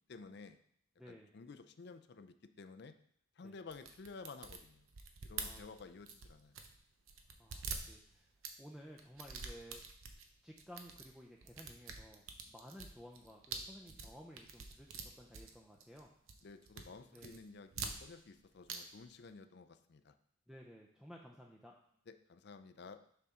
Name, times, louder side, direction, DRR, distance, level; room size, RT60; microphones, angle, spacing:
voice 1, 0.1-0.6 1.1-2.9 3.4-4.9 5.2-6.6 16.4-20.1 22.1-23.0, left 4 dB, 55° left, 10 dB, 0.4 m, -53 dB
voice 2, 1.0-1.3 3.4-3.5 5.4-5.7 7.4-8.3 8.6-9.8 10.4-16.1 17.1-17.4 20.5-21.7, equal, ahead, -1 dB, 0.5 m, -55 dB
sound 1, 3.7-6.8 7.1-8.5 9.0-10.3 10.6-11.1 11.4-16.0 16.3-16.9 17.2-18.4 18.7-18.8 19.0-19.1, right 5 dB, 90° right, 0.8 m, -46 dB
6.8 x 5.7 x 3.7 m, 0.66 s
head